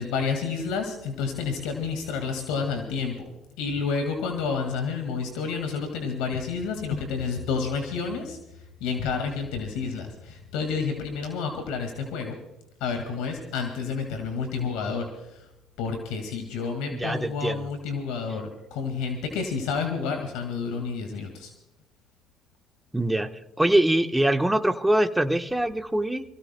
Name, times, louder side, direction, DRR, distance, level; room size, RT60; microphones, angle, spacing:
voice 1, 0.0-3.1 3.6-8.4 8.8-12.4 12.8-15.4 15.8-21.5, left 5 dB, 80° left, 5 dB, 1.9 m, -30 dB
voice 2, 16.9-17.6 22.9-23.3 23.6-26.2, right 1 dB, 10° right, 7 dB, 1.1 m, -23 dB
25.5 x 17.0 x 2.2 m, 0.87 s
supercardioid pair, 70°, 0 cm